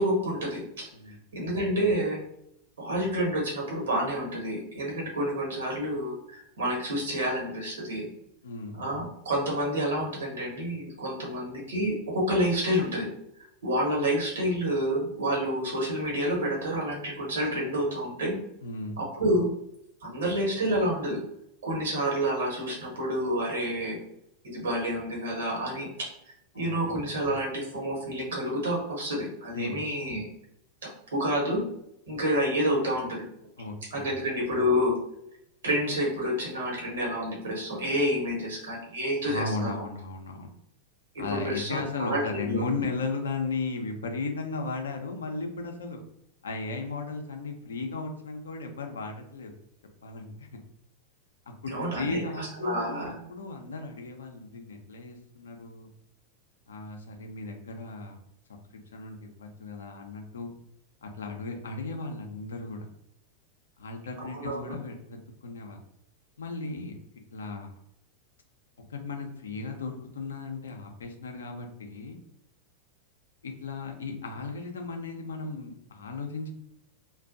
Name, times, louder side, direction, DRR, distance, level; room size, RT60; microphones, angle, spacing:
voice 1, 0.0-0.9 1.3-2.2 2.8-8.1 8.8-13.1 13.6-18.4 19.0-19.5 20.0-21.2 21.6-24.0 24.4-26.1 26.5-30.2 30.8-31.6 32.1-33.3 33.9-35.0 35.6-39.7 41.1-42.6 51.7-53.1 64.3-64.7, equal, 65° right, -2 dB, 1.0 m, -29 dB
voice 2, 8.4-8.8 18.6-19.0 26.5-26.9 29.5-29.8 33.6-34.1 39.2-40.6 41.2-46.0 46.4-49.5 50.0-50.5 51.6-55.9 56.7-58.2 58.9-60.5 61.0-62.9 63.8-65.8 66.4-67.0 67.3-67.8 68.9-72.2 73.4-76.5, left 3 dB, 70° left, 3 dB, 0.5 m, -36 dB
2.4 x 2.2 x 2.4 m, 0.77 s
figure-of-eight pair, 90°, 0 cm